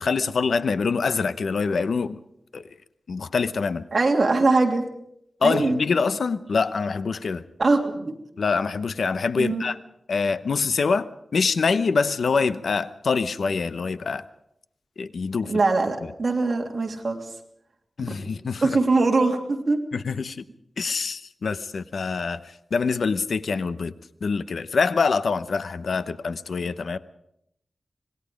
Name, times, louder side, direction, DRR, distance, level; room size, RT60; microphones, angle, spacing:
voice 1, 0.0-2.2 2.5-2.6 3.1-3.8 5.4-7.4 8.4-9.8 10.1-14.2 15.0-15.5 18.0-18.8 19.9-20.4 20.8-23.9 24.2-27.0, left 5 dB, 80° left, 0.8 m, -25 dB
voice 2, 3.9-4.8 5.4-5.8 7.6-8.1 9.4-9.6 15.4-17.3 18.6-19.8, right 3 dB, 50° right, 3.0 m, -22 dB
25.5 x 20.0 x 5.2 m
wide cardioid pair, 125°, 0 cm